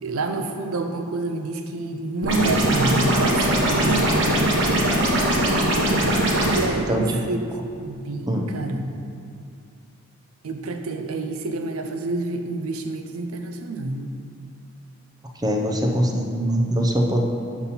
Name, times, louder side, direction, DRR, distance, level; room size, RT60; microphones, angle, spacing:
voice 1, 0.0-4.1 6.5-7.4 7.8-9.0 10.4-14.1, right 3 dB, 80° right, 5 dB, 0.6 m, -28 dB
sound 1, 2.2-6.6, right 1 dB, 60° right, 1.1 m, -20 dB
voice 2, 15.4-17.2, equal, 15° right, 2 dB, 0.6 m, -22 dB
7.0 x 4.1 x 5.7 m, 2.4 s
head